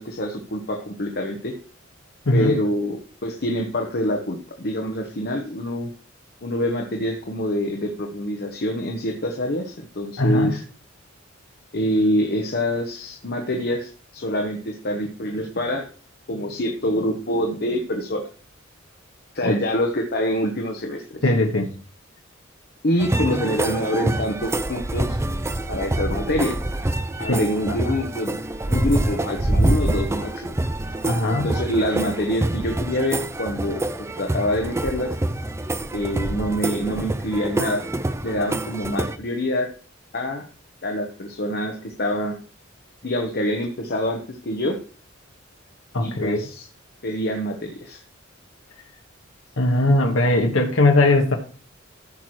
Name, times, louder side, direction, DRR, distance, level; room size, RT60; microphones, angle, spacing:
voice 1, 0.0-1.6 2.3-5.9 6.4-10.6 11.7-15.8 16.3-18.2 19.3-21.2 22.8-25.2 25.7-26.5 27.2-28.3 28.7-30.5 31.4-35.2 35.9-37.8 38.2-39.7 40.1-40.5 40.8-42.4 43.0-44.8 46.0-46.7 47.0-48.0, left 1 dB, 55° left, 3 dB, 1.1 m, -25 dB
voice 2, 10.2-10.6 19.4-19.5 21.2-21.7 27.3-27.4 27.8-28.0 31.0-31.5 45.9-46.4 49.6-51.3, left 2 dB, 80° left, 2 dB, 1.1 m, -19 dB
sound 1, 23.0-39.2, right 1 dB, 15° right, 0.4 m, -26 dB
Piano, 23.3-24.3, equal, 10° left, 2.9 m, -36 dB
14.5 x 6.0 x 3.2 m, 0.41 s
head